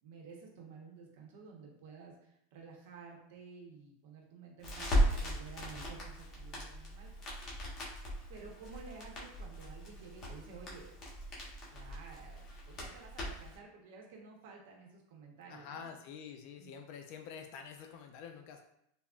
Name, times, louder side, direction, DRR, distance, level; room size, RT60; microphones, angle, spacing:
voice 1, 0.0-7.1 8.3-10.9 11.6-15.9 16.6-16.7, right 4 dB, 70° right, 0 dB, 0.7 m, -52 dB
Crackle, 4.6-13.6, equal, 30° left, 0.9 m, -37 dB
voice 2, 15.5-18.6, left 7 dB, 55° left, 5 dB, 0.3 m, -47 dB
3.5 x 2.0 x 2.3 m, 0.76 s
supercardioid pair, 125°, 0 cm